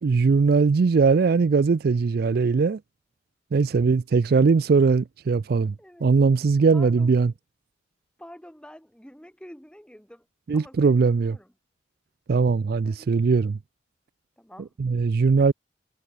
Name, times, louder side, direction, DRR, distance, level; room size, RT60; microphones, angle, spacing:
voice 1, 0.0-2.8 3.5-5.7 6.0-7.3 10.5-11.4 12.3-13.6 14.8-15.5, right 4 dB, 50° right, 0.4 m, -20 dB
voice 2, 6.7-7.1 8.2-10.3 10.5-11.5 12.8-13.1 14.4-14.8, equal, 5° left, 3.4 m, -47 dB
head